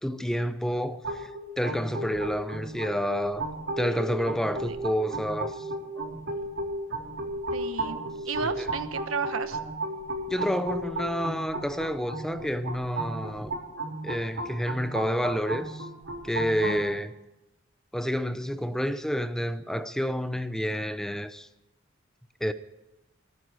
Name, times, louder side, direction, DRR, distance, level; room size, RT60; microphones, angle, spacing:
voice 1, 0.0-1.3 1.6-3.5 3.8-5.7 8.6-8.7 10.3-13.6 14.0-15.9 16.2-17.1 17.9-21.5 22.4-22.5, equal, 5° left, 0.6 m, -29 dB
sound 1, 1.0-16.8, right 1 dB, 60° right, 4.2 m, -34 dB
voice 2, 7.5-8.0 8.2-9.6, right 5 dB, 85° right, 1.2 m, -32 dB
23.0 x 9.6 x 5.0 m
head